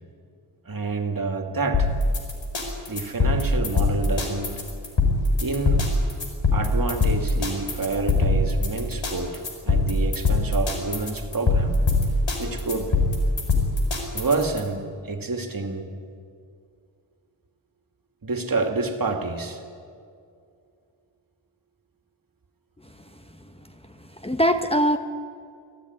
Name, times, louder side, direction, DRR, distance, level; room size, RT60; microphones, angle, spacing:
voice 1, 0.6-1.9 2.9-4.5 5.4-5.9 6.5-11.8 12.4-13.0 14.1-15.9 18.2-19.6, right 3 dB, 50° right, 5 dB, 2.5 m, -28 dB
sound 1, 1.7-14.6, left 2 dB, 85° left, 4.7 m, -22 dB
voice 2, 24.0-25.0, equal, 15° left, 7 dB, 1.1 m, -22 dB
25.5 x 17.0 x 9.6 m, 2.4 s
wide cardioid pair, 100°, 44 cm